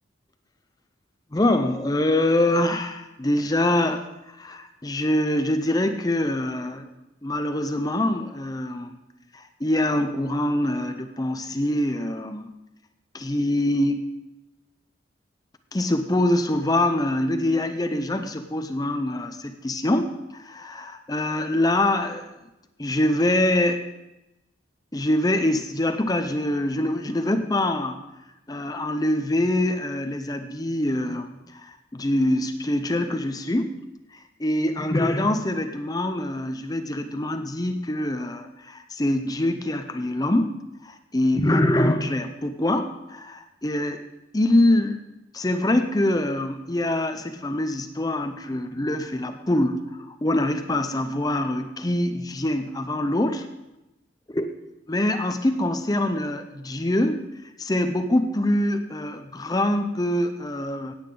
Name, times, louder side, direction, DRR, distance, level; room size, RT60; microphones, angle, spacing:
voice 1, 1.3-6.9 7.2-8.9 9.3-12.5 13.1-14.0 15.7-22.3 22.8-23.8 24.9-28.0 28.5-33.8 34.1-40.6 40.8-44.0 44.3-45.0 45.3-53.5 54.3-54.5 54.9-57.2 57.6-60.9, left 1 dB, 20° left, 7 dB, 0.6 m, -24 dB
17.0 x 8.7 x 3.8 m, 0.95 s
head